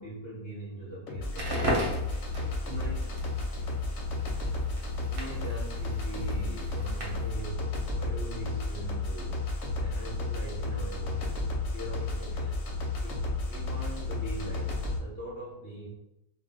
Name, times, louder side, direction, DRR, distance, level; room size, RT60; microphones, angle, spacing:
voice 1, 0.0-1.9 2.6-3.1 3.9-4.0 5.0-12.6 13.0-14.7 15.0-15.9, right 1 dB, 20° left, -9 dB, 0.4 m, -42 dB
sound 1, 1.1-15.0, left 2 dB, 65° left, 0.8 m, -32 dB
Crackle, 1.2-7.4, right 1 dB, 50° right, 0.7 m, -37 dB
2.4 x 2.1 x 3.6 m, 0.91 s
omnidirectional pair, 1.6 m